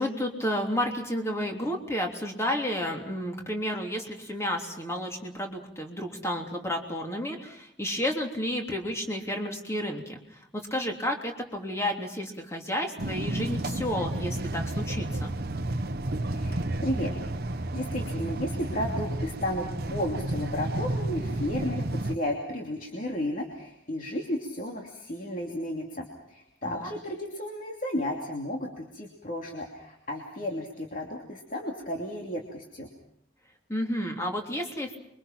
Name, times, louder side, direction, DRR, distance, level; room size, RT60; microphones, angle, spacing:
voice 1, 0.0-10.2 10.5-15.3 26.6-26.9 33.7-35.0, equal, 15° left, 2 dB, 3.2 m, -31 dB
sound 1, 13.0-22.2, right 1 dB, 55° right, 1.0 m, -31 dB
voice 2, 16.2-17.1 17.4-32.9, left 1 dB, 45° left, 1 dB, 2.8 m, -33 dB
28.5 x 24.0 x 5.9 m, 0.72 s
head